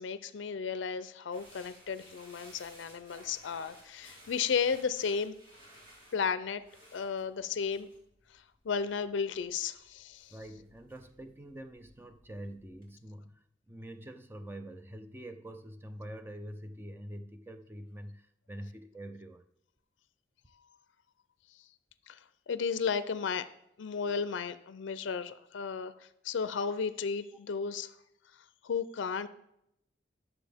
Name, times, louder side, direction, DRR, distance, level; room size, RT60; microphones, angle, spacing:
voice 1, 0.0-5.3 6.1-6.6 6.9-7.9 8.3-10.3 22.1-22.2 22.5-23.5 23.8-27.9 28.6-29.3, left 6 dB, 80° left, 13 dB, 0.4 m, -34 dB
sound 1, 1.3-12.9, equal, 45° right, 2.7 m, -58 dB
voice 2, 10.3-19.4, right 1 dB, 10° right, 7 dB, 0.5 m, -45 dB
11.5 x 6.9 x 3.4 m, 0.78 s
head